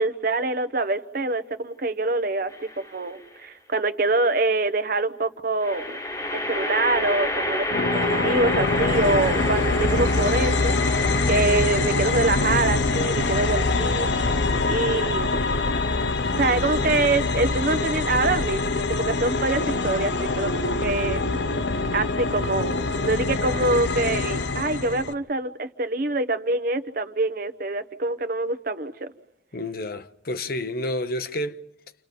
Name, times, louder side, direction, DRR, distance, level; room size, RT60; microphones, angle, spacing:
voice 1, 0.0-6.0 6.3-7.7 8.1-11.0 11.3-15.4 16.3-21.4 21.9-29.1, right 2 dB, 55° right, 1.0 m, -25 dB
sound 1, 2.5-3.1 5.6-17.0, left 1 dB, 20° left, 1.3 m, -30 dB
sound 2, 7.7-25.1, left 3 dB, 85° left, 0.8 m, -24 dB
voice 2, 29.5-31.6, left 1 dB, 55° left, 0.9 m, -29 dB
29.0 x 27.0 x 5.4 m
head